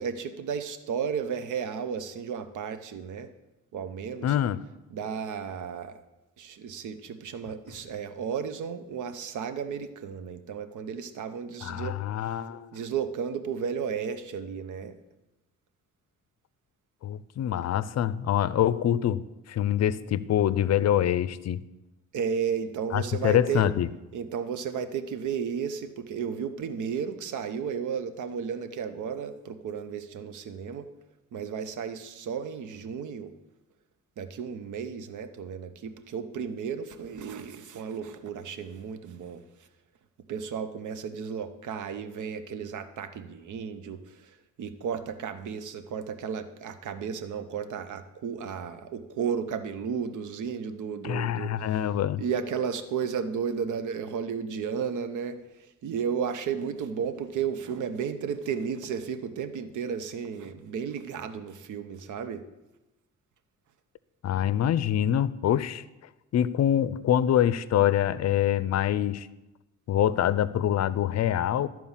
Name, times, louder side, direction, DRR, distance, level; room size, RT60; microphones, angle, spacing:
voice 1, 0.0-3.3 3.7-4.3 4.9-6.0 6.4-12.0 12.2-12.4 12.7-15.0 22.1-23.7 24.1-30.9 31.3-33.3 34.2-39.4 40.3-44.0 44.6-51.8 52.2-55.4 55.8-62.4, right 7 dB, 80° right, 11 dB, 0.9 m, -33 dB
voice 2, 4.2-4.6 11.6-12.7 17.0-21.6 22.9-23.9 51.0-52.2 64.2-65.8 66.3-69.3 69.9-71.7, left 11 dB, 60° left, 17 dB, 0.5 m, -25 dB
12.5 x 4.7 x 7.3 m, 1.0 s
cardioid pair, 95°, 30 cm